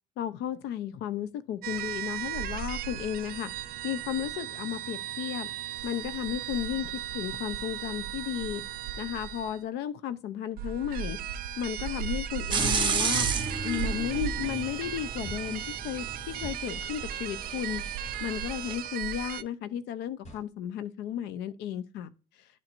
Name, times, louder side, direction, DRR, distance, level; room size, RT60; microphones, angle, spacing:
voice 1, 0.2-3.5 3.8-5.5 5.8-8.6 9.0-11.2 11.6-13.3 13.6-17.8 18.2-22.1, left 10 dB, 85° left, 0.6 m, -34 dB
sound 1, 1.6-9.6 10.6-19.4, right 9 dB, 60° right, 0.5 m, -36 dB
sound 2, 12.5-18.7, right 5 dB, 30° right, 1.2 m, -33 dB
sound 3, 15.2-15.5 16.4-16.6 17.7-17.9 18.6-18.8 20.2-20.5, right 1 dB, 40° left, 1.7 m, -44 dB
11.0 x 4.4 x 2.6 m
cardioid pair, 110°, 17 cm